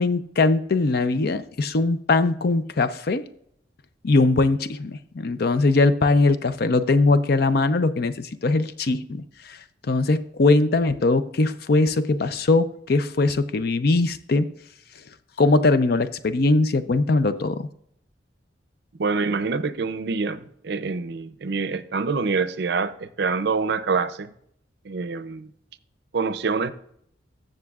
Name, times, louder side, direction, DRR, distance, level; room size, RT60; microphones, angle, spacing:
voice 1, 0.0-3.3 4.0-14.5 15.4-17.7, left 3 dB, 55° left, 0.5 m, -21 dB
voice 2, 19.0-24.3 24.8-25.5 26.1-26.7, right 4 dB, 65° right, 0.5 m, -26 dB
14.5 x 6.7 x 2.4 m
head